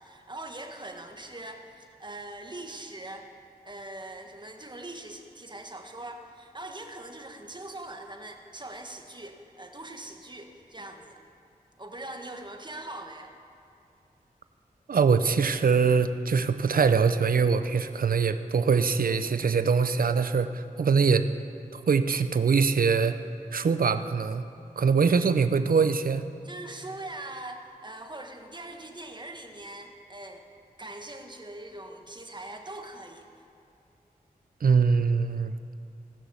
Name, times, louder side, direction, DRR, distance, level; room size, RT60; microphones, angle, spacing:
voice 1, 0.0-3.3 3.6-11.2 11.8-13.3 25.0-25.3 26.4-30.4 30.8-33.3, right 2 dB, 30° right, 4 dB, 1.5 m, -42 dB
voice 2, 14.9-21.3 21.7-23.2 23.5-24.4 24.8-26.2 34.6-35.5, right 5 dB, 65° right, 11 dB, 0.6 m, -23 dB
17.5 x 6.2 x 7.1 m, 2.7 s
cardioid pair, 45°, 16 cm